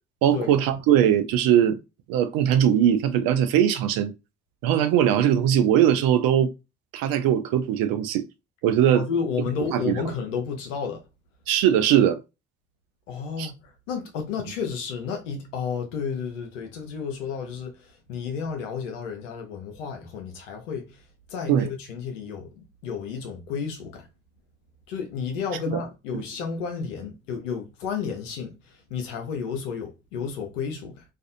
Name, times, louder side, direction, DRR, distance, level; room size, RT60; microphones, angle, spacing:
voice 1, 0.2-1.8 2.1-4.1 4.6-6.5 6.9-8.2 8.6-9.1 9.7-9.9 11.5-12.2 13.4-13.5 21.5-21.7, right 10 dB, 70° right, 0.5 m, -20 dB
voice 2, 8.9-11.0 13.1-21.0 21.3-24.1 24.9-31.0, left 6 dB, 90° left, 0.7 m, -32 dB
2.5 x 2.4 x 2.4 m
hypercardioid pair, 45°, 36 cm